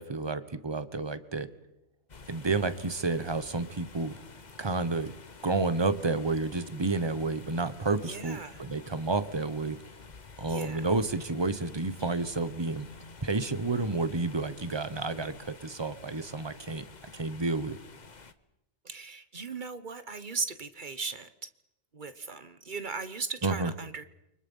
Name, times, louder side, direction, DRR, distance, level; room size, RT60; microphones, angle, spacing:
voice 1, 0.0-1.5 2.3-4.2 4.6-5.1 5.4-9.8 10.4-12.9 13.2-16.8 17.1-17.8 23.4-23.7, right 3 dB, 20° right, 13 dB, 1.2 m, -30 dB
sound 1, 2.1-18.3, left 4 dB, 35° left, 1.2 m, -50 dB
voice 2, 8.0-8.7 10.5-10.9 18.8-21.3 21.9-24.0, right 4 dB, 40° right, 11 dB, 1.3 m, -37 dB
29.5 x 24.5 x 5.6 m, 0.85 s
omnidirectional pair, 1.4 m